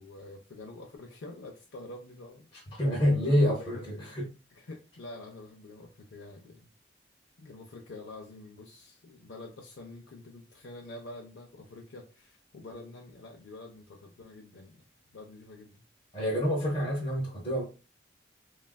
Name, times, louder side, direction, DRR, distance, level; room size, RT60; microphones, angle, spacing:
voice 1, 0.0-2.8 3.1-4.0 4.5-6.7 7.4-14.8 15.1-15.8, left 2 dB, 85° left, 1 dB, 0.5 m, -47 dB
voice 2, 2.8-4.2 16.1-17.6, equal, 30° left, -3 dB, 0.7 m, -27 dB
3.3 x 2.3 x 2.2 m, 0.32 s
head